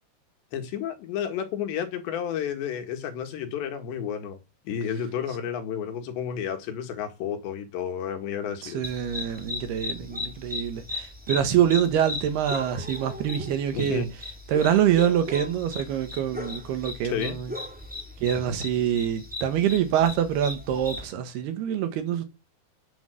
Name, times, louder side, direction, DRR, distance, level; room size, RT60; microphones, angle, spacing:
voice 1, 0.5-4.4 4.7-8.8 13.7-14.1 17.0-17.4, left 8 dB, 80° left, 4.0 m, -31 dB
voice 2, 8.6-14.0 14.5-17.5 18.2-22.2, right 9 dB, 70° right, 3.3 m, -25 dB
sound 1, 8.8-21.1, left 2 dB, 5° right, 0.9 m, -37 dB
10.0 x 7.7 x 7.9 m
omnidirectional pair, 5.1 m